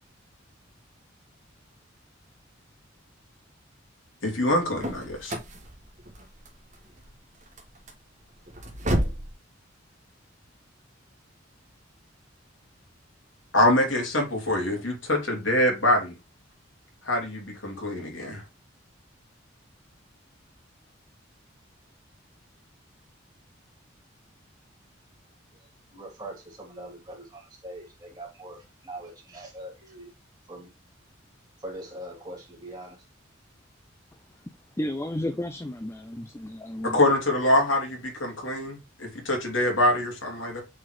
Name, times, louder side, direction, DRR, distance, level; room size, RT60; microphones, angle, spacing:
voice 1, 4.2-5.3 13.5-16.1 17.0-18.4 36.8-40.6, left 1 dB, 85° left, 2.8 m, -24 dB
sound 1, 4.4-9.3, right 1 dB, 40° right, 1.6 m, -32 dB
voice 2, 25.9-28.6 28.8-30.1 30.5-30.7 31.6-33.0, right 1 dB, 20° right, 3.0 m, -42 dB
voice 3, 34.8-37.0, left 1 dB, 15° left, 0.4 m, -32 dB
7.5 x 4.3 x 3.2 m
head